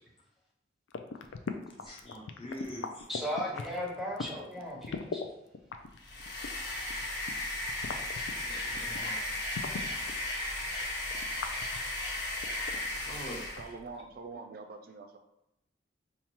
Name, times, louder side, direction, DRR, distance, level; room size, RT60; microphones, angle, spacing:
sound 1, 0.9-5.3 5.5-10.2 10.6-13.2 13.5-13.6, left 5 dB, 90° left, 0.4 m, -40 dB
voice 1, 1.8-3.1 8.3-9.2 9.7-9.9 13.0-13.4, equal, 30° left, -1 dB, 0.7 m, -44 dB
voice 2, 3.1-5.2, equal, ahead, -3 dB, 0.7 m, -36 dB
sound 2, 6.0-13.7, left 1 dB, 70° left, 1.1 m, -35 dB
voice 3, 13.6-15.2, right 4 dB, 50° right, 5 dB, 0.3 m, -45 dB
5.3 x 2.2 x 2.9 m, 0.85 s
head